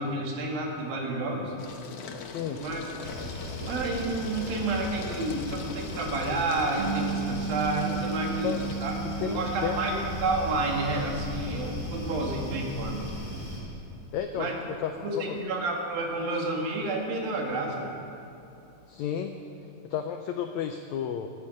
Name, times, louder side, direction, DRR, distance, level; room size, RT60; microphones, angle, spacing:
voice 1, 0.0-1.5 2.5-2.8 3.6-8.6 8.8-13.1 14.4-14.6 15.0-17.9, right 2 dB, 85° right, 0 dB, 3.6 m, -30 dB
sound 1, 1.6-19.0, left 5 dB, 70° left, 1.5 m, -44 dB
voice 2, 2.3-2.6 8.4-8.7 9.0-10.0 14.1-15.4 18.9-19.4 19.8-21.3, left 8 dB, 90° left, 6 dB, 1.6 m, -33 dB
sound 2, 3.0-13.6, left 1 dB, 20° left, 4.0 m, -38 dB
Bass guitar, 6.8-13.0, right 5 dB, 70° right, 0.9 m, -36 dB
17.0 x 12.0 x 5.2 m, 2.9 s
omnidirectional pair, 4.0 m